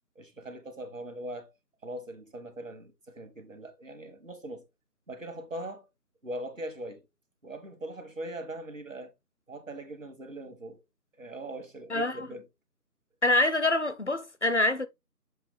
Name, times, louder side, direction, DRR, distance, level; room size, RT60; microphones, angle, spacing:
voice 1, 0.1-1.5 1.8-4.7 5.1-5.9 6.2-7.0 7.4-9.1 9.5-10.8 11.2-12.4, right 1 dB, 55° right, 1.6 m, -40 dB
voice 2, 11.9-12.3 13.2-14.9, left 2 dB, 45° left, 0.7 m, -25 dB
7.2 x 2.8 x 5.0 m
figure-of-eight pair, 165°, 48 cm